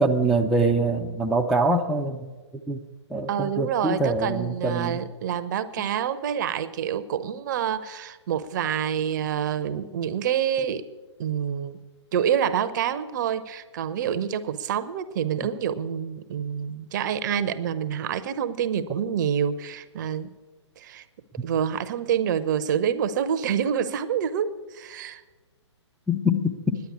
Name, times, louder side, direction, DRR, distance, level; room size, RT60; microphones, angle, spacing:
voice 1, 0.0-2.3 2.7-2.8 3.1-5.0 15.4-15.5 26.1-26.8, right 1 dB, ahead, -2 dB, 0.4 m, -24 dB
voice 2, 3.3-10.8 11.2-11.8 12.1-20.3 20.8-21.0 21.4-25.2, right 8 dB, 40° right, 13 dB, 0.7 m, -27 dB
10.5 x 9.1 x 8.4 m, 1.3 s
figure-of-eight pair, 130°, 15 cm